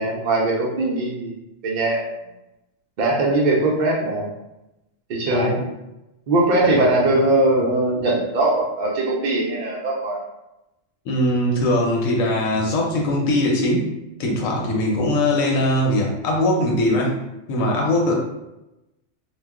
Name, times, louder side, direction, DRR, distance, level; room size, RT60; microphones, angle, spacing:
voice 1, 0.0-1.3 1.6-2.0 3.0-4.3 5.1-5.6 6.3-10.2, right 2 dB, 75° right, -2 dB, 0.4 m, -20 dB
voice 2, 11.1-13.9 14.2-17.2 17.5-18.1, left 1 dB, 85° left, -2 dB, 1.0 m, -21 dB
2.3 x 2.0 x 3.5 m, 0.94 s
omnidirectional pair, 1.4 m